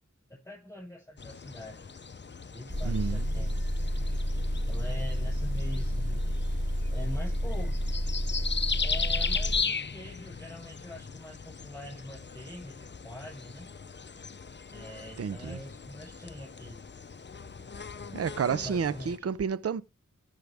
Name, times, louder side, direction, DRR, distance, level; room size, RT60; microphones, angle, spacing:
voice 1, 0.3-1.8 2.5-3.7 4.7-6.2 6.9-7.8 8.7-13.7 14.7-16.8 18.6-19.3, left 1 dB, 10° left, 7.2 m, -44 dB
sound 1, 1.2-19.2, left 5 dB, 35° left, 0.6 m, -38 dB
Motor vehicle (road) / Engine, 2.7-9.6, equal, 25° right, 4.1 m, -30 dB
voice 2, 2.8-3.5 15.2-15.6 18.1-19.8, right 6 dB, 50° right, 0.5 m, -31 dB
14.0 x 6.3 x 3.4 m
wide cardioid pair, 65°, 30 cm